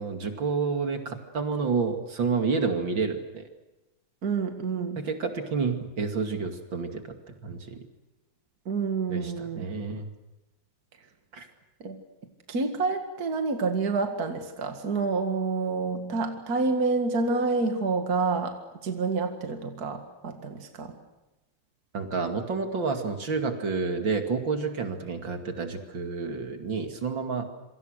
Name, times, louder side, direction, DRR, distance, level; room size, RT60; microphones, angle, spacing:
voice 1, 0.0-3.5 5.0-7.0 7.4-7.8 9.1-10.1 11.3-11.5 21.9-27.5, right 4 dB, 65° right, 5 dB, 3.1 m, -29 dB
voice 2, 4.2-5.0 8.7-9.7 11.8-12.0 12.5-18.6 18.8-21.0, right 4 dB, 50° right, 5 dB, 2.4 m, -28 dB
27.0 x 25.0 x 6.5 m, 1.0 s
omnidirectional pair, 2.2 m